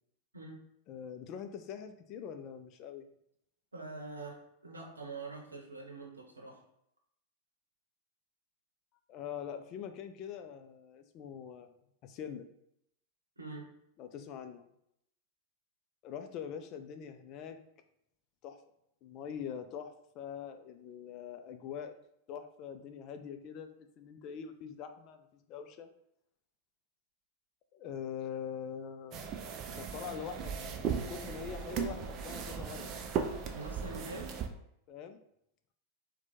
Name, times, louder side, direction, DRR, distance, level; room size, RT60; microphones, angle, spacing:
voice 1, 0.9-3.0 9.1-11.7 12.0-12.5 14.0-14.7 16.0-17.6 18.4-18.6 19.0-21.9 22.3-23.7 24.0-25.9 27.7-29.3 29.7-33.0 34.9-35.2, left 8 dB, 40° left, 7 dB, 0.4 m, -43 dB
voice 2, 3.7-6.6 13.4-13.7 33.5-34.4, right 3 dB, 80° right, 1 dB, 0.8 m, -45 dB
sound 1, 29.1-34.5, right 6 dB, 35° right, 0.4 m, -37 dB
4.3 x 2.2 x 4.2 m, 0.76 s
figure-of-eight pair, 90°, 0 cm